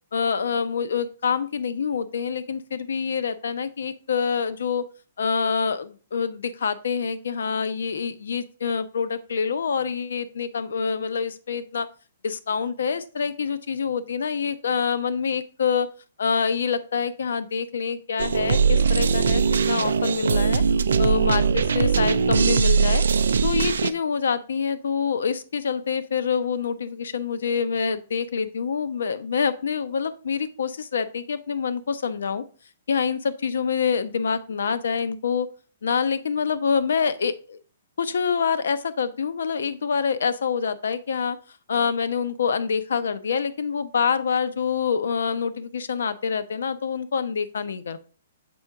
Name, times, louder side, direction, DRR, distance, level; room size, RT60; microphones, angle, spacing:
voice 1, 0.1-4.9 5.2-11.9 12.2-15.9 16.2-20.6 21.0-23.0 23.4-32.4 32.9-35.5 35.8-37.6 38.0-41.4 41.7-48.0, left 6 dB, 75° left, 13 dB, 0.6 m, -26 dB
sound 1, 18.2-23.9, right 5 dB, 80° right, 0.3 m, -21 dB
6.9 x 4.3 x 3.5 m, 0.38 s
hypercardioid pair, 135°, 0 cm